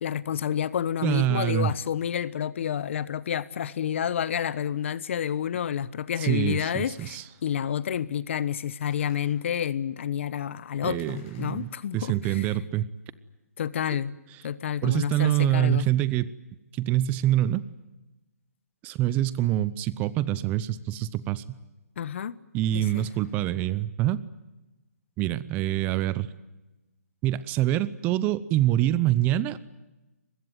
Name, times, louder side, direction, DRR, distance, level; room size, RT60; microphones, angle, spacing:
voice 1, 0.0-12.5 13.6-14.1 14.4-15.9 22.0-22.4 22.7-23.1, left 9 dB, 50° left, 1.1 m, -29 dB
voice 2, 1.0-1.7 6.2-7.2 10.8-12.9 14.8-16.3 16.7-17.6 18.8-21.4 22.5-24.2 25.2-26.3 27.2-29.6, right 13 dB, 20° right, 0.8 m, -25 dB
Gunshot gunfire, 6.9-7.7 8.9-9.9 11.0-12.2 22.6-23.7, left 6 dB, 30° left, 5.8 m, -59 dB
23.5 x 21.0 x 9.3 m
hypercardioid pair, 155°, 9 cm